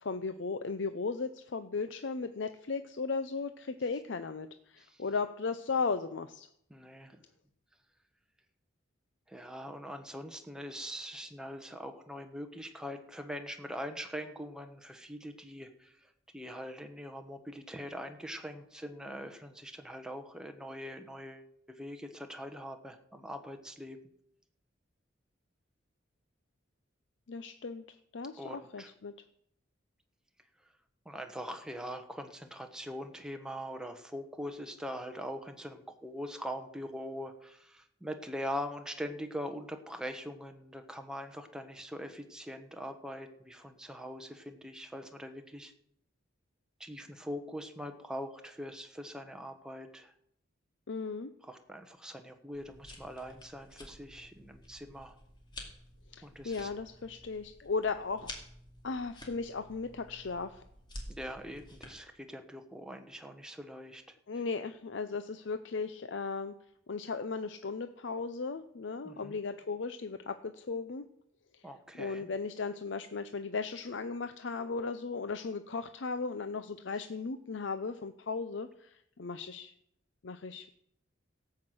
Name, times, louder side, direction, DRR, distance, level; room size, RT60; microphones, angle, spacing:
voice 1, 0.0-6.5 27.3-27.8 28.1-29.1 50.9-51.3 56.1-58.3 58.8-60.6 64.3-66.5 66.9-71.0 71.5-71.6 71.9-79.7 80.2-80.7, left 4 dB, 65° left, 9 dB, 0.6 m, -36 dB
voice 2, 6.7-7.2 9.3-15.9 16.3-24.0 28.4-28.9 31.0-45.7 46.8-50.1 51.4-55.2 56.2-56.7 61.1-64.2 69.0-69.4 71.6-72.3, equal, 5° right, 6 dB, 1.1 m, -42 dB
sound 1, 52.5-61.9, left 1 dB, 25° left, 2.4 m, -50 dB
17.0 x 5.8 x 7.8 m, 0.73 s
head